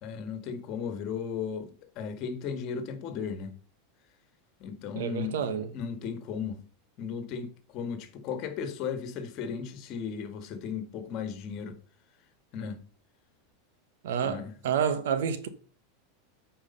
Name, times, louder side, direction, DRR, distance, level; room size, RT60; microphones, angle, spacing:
voice 1, 0.0-3.5 4.6-6.6 7.0-11.8 12.5-12.8 14.2-14.5, left 6 dB, 45° left, 1.8 m, -36 dB
voice 2, 4.9-5.7 14.0-15.5, right 7 dB, 80° right, 1.2 m, -29 dB
8.7 x 4.9 x 5.5 m
supercardioid pair, 125°, 0 cm